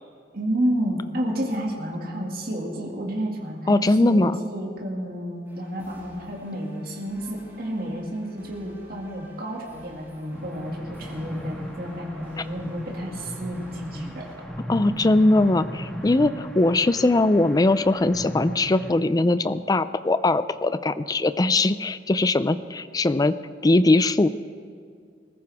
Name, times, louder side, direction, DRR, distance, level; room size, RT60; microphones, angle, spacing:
voice 1, 0.3-14.3, equal, 55° right, -2 dB, 2.3 m, -30 dB
voice 2, 3.7-4.4 14.7-23.3 23.6-24.3, left 2 dB, 20° left, 13 dB, 0.4 m, -20 dB
sound 1, 5.4-14.4, equal, 15° right, 4.1 m, -51 dB
sound 2, 10.3-18.9, equal, 5° left, 1.5 m, -37 dB
21.0 x 14.5 x 3.5 m, 2.3 s
head